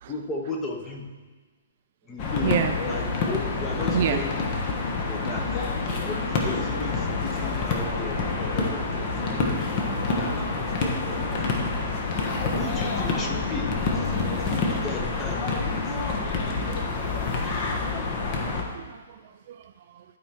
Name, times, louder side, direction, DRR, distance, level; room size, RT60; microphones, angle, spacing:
voice 1, 0.1-1.1 2.1-2.6 2.9-4.5 5.1-5.5 6.1-9.5 9.9-11.3 12.6-16.0, left 3 dB, 15° left, 1 dB, 1.2 m, -36 dB
sound 1, 2.2-18.6, left 3 dB, 35° left, 1.3 m, -27 dB
voice 2, 2.4-2.7 3.9-4.2 12.3-12.4 13.3-13.4 14.3-14.5 17.3-17.4 18.3-20.0, right 10 dB, 45° right, 8 dB, 0.4 m, -30 dB
12.0 x 4.7 x 4.4 m, 1.4 s
figure-of-eight pair, 120°, 0 cm